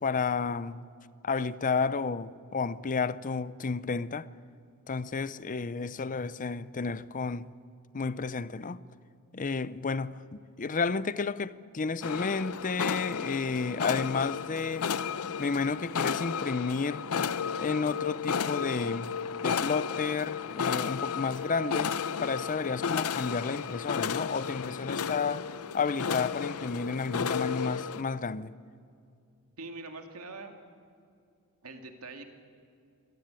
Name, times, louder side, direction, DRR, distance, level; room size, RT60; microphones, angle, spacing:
voice 1, 0.0-0.8 1.2-4.3 4.9-7.5 7.9-8.8 9.3-14.9 15.4-17.1 17.6-19.2 19.4-25.5 25.7-28.6, left 4 dB, 40° left, 0.6 m, -31 dB
sound 1, 11.9-27.9, equal, 40° right, 3.9 m, -59 dB
sound 2, 12.0-28.0, left 6 dB, 90° left, 0.6 m, -33 dB
voice 2, 29.6-30.5 31.6-32.3, right 3 dB, 85° right, 2.4 m, -43 dB
25.5 x 17.5 x 9.0 m
head